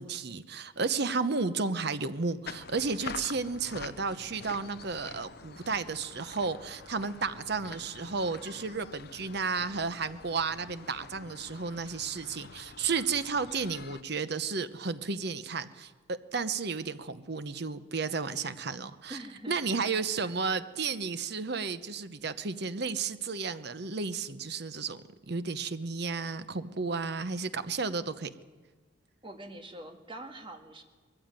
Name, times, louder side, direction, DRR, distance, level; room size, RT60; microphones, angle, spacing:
voice 1, 0.0-19.2 19.5-28.3, right 4 dB, 55° right, 12 dB, 0.9 m, -33 dB
sound 1, 2.5-14.0, left 5 dB, 50° left, 0.7 m, -47 dB
voice 2, 19.1-19.8 20.1-20.3 29.2-30.8, right 1 dB, 25° right, 5 dB, 1.8 m, -45 dB
21.0 x 14.5 x 9.0 m, 1.4 s
head